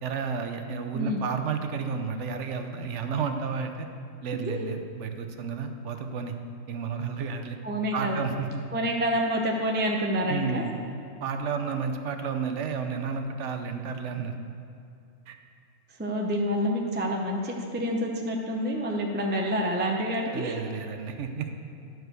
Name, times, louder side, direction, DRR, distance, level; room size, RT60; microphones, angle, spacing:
voice 1, 0.0-3.9 4.2-6.4 6.7-7.6 7.9-8.6 10.3-10.7 11.2-14.3 15.3-15.4 20.3-21.5, right 5 dB, 65° right, 6 dB, 1.0 m, -31 dB
voice 2, 4.3-4.7 7.6-8.2 8.7-10.6 16.0-20.6, equal, 10° right, 0 dB, 0.6 m, -28 dB
11.0 x 4.7 x 6.7 m, 2.6 s
omnidirectional pair, 1.3 m